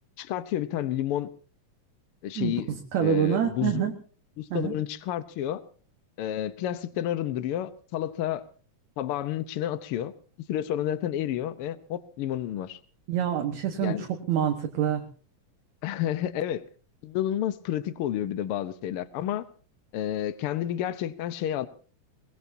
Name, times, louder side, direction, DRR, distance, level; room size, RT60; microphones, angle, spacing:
voice 1, 0.2-1.3 2.2-2.7 3.0-3.9 4.4-5.6 6.2-8.4 9.0-10.1 10.5-12.8 13.8-14.1 15.8-16.6 17.0-19.4 19.9-21.7, left 11 dB, 85° left, 14 dB, 1.2 m, -30 dB
voice 2, 2.4-3.9 4.5-4.7 13.1-15.0, right 10 dB, 65° right, 4 dB, 2.5 m, -27 dB
22.0 x 20.5 x 2.7 m, 0.41 s
omnidirectional pair, 3.7 m